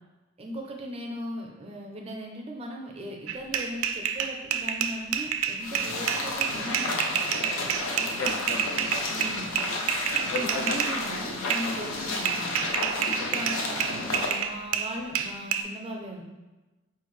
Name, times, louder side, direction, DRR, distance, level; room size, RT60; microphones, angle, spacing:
voice 1, 0.4-7.4 9.1-9.6 10.4-12.7 13.2-16.2, equal, 30° right, 1 dB, 0.5 m, -38 dB
sound 1, 3.3-11.0 11.5-11.7 12.2-15.6, right 8 dB, 90° right, 0.3 m, -29 dB
sound 2, 5.6-14.4, left 2 dB, 85° left, 0.6 m, -32 dB
voice 2, 8.0-9.0 10.3-10.8 11.6-11.8 13.2-13.4 14.1-14.3, left 3 dB, 45° left, 5 dB, 0.3 m, -35 dB
4.5 x 2.5 x 3.1 m, 1.1 s
head